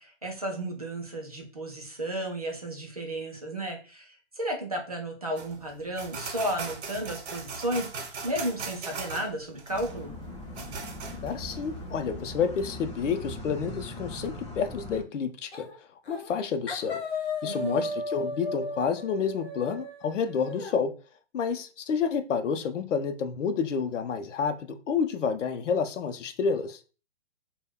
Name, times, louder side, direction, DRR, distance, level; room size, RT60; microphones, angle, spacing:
voice 1, 0.0-10.1 17.4-17.8, right 1 dB, 35° right, 0.4 m, -33 dB
sound 1, 5.4-12.0, right 4 dB, 65° right, 0.7 m, -39 dB
sound 2, 9.7-15.0, left 1 dB, 25° left, 0.5 m, -40 dB
voice 2, 11.2-15.7 16.1-17.0 17.4-20.9 21.3-26.8, left 6 dB, 90° left, 0.5 m, -29 dB
sound 3, 15.5-15.8 16.0-16.4 16.7-20.7, left 2 dB, 60° left, 0.9 m, -35 dB
2.2 x 2.1 x 3.4 m
hypercardioid pair, 170°, 36 cm